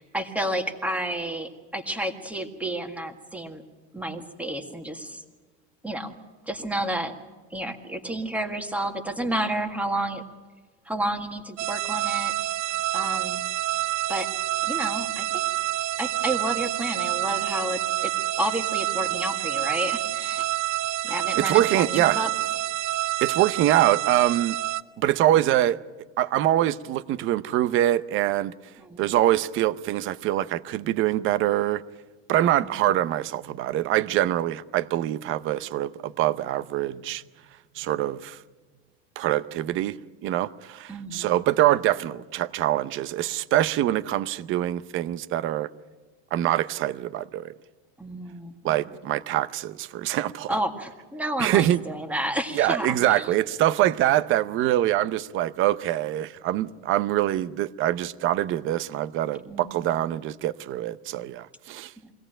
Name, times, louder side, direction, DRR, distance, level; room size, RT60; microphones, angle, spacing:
voice 1, 0.0-3.6 3.9-5.2 5.8-6.2 6.5-7.2 7.5-10.2 10.9-12.3 12.9-13.4 14.1-14.3 14.7-15.4 16.0-18.1 18.4-20.5 21.0-22.3 28.8-29.0 32.6-32.7 40.9-41.3 48.0-49.0 50.5-53.3 59.5-59.9 62.0-62.1, right 1 dB, 5° right, 1.7 m, -31 dB
sound 1, 11.6-24.8, right 14 dB, 90° right, 0.8 m, -28 dB
voice 2, 21.4-22.2 23.2-24.6 25.0-25.8 26.2-28.5 29.0-31.8 32.3-37.2 37.8-38.4 39.2-45.7 46.3-47.5 48.6-50.5 51.4-51.8 52.5-61.9, right 13 dB, 35° right, 0.7 m, -24 dB
23.5 x 17.0 x 8.9 m
supercardioid pair, 145°, 35 cm